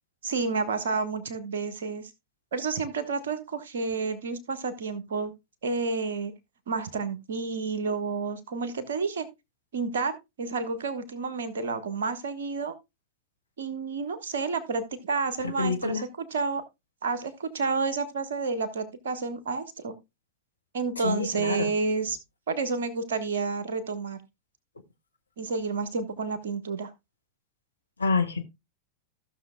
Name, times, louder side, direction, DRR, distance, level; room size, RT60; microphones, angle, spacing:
voice 1, 0.2-2.1 2.5-5.3 5.6-6.3 6.7-9.3 9.7-12.7 13.6-16.6 17.0-19.9 20.7-22.2 22.5-24.2 25.4-26.9, right 4 dB, 60° right, 1.4 m, -30 dB
voice 2, 15.4-16.0 21.0-21.7 28.0-28.4, left 3 dB, 75° left, 1.0 m, -27 dB
15.5 x 6.5 x 2.3 m
figure-of-eight pair, 90°, 0 cm